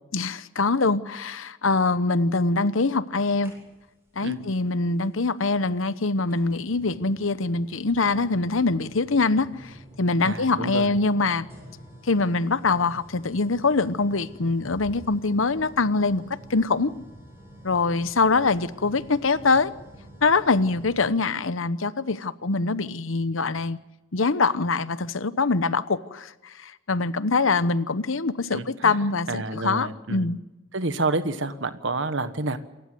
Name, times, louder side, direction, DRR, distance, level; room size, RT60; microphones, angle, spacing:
voice 1, 0.1-3.5 4.2-11.5 12.0-16.2 16.5-16.9 17.6-19.7 20.2-23.8 24.1-30.4, left 3 dB, 80° left, 15 dB, 1.0 m, -24 dB
sound 1, 3.4-4.1 5.4-5.5 6.3-21.3, equal, 15° right, 7.7 m, -47 dB
voice 2, 10.2-10.9 28.5-29.0 29.3-30.3 30.7-32.6, right 3 dB, 65° right, 11 dB, 1.4 m, -29 dB
27.5 x 15.0 x 7.9 m, 1.0 s
head